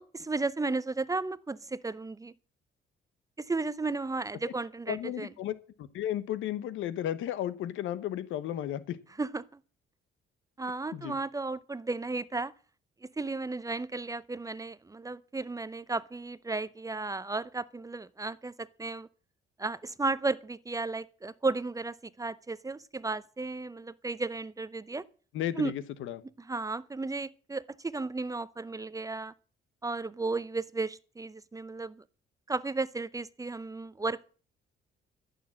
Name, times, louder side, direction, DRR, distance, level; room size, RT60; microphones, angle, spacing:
voice 1, 0.0-2.3 3.4-5.3 9.2-9.4 10.6-12.5 13.0-19.1 19.6-25.0 25.6-25.7 26.4-29.3 29.8-32.0 32.5-34.2, right 3 dB, 15° right, 0.6 m, -34 dB
voice 2, 4.9-9.0 10.9-11.2 25.3-26.2, left 11 dB, 85° left, 1.0 m, -34 dB
13.5 x 6.9 x 7.6 m
cardioid pair, 90°, 20 cm